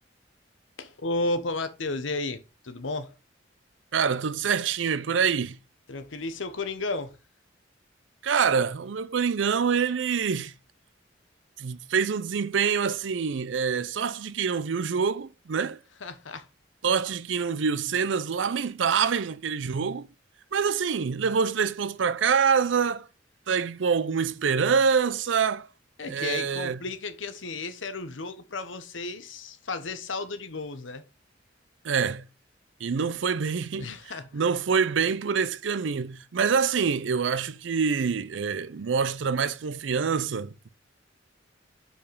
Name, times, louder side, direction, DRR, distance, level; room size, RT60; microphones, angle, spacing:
voice 1, 0.8-3.1 5.9-7.2 16.0-16.5 26.0-31.0 33.8-34.3, left 3 dB, 85° left, 1.0 m, -33 dB
voice 2, 3.9-5.6 8.2-10.5 11.6-15.8 16.8-20.1 20.5-23.1 23.5-25.7 26.1-26.8 31.8-32.3 32.8-33.9 34.3-40.7, right 6 dB, 75° right, 0.5 m, -26 dB
5.2 x 4.8 x 5.2 m
head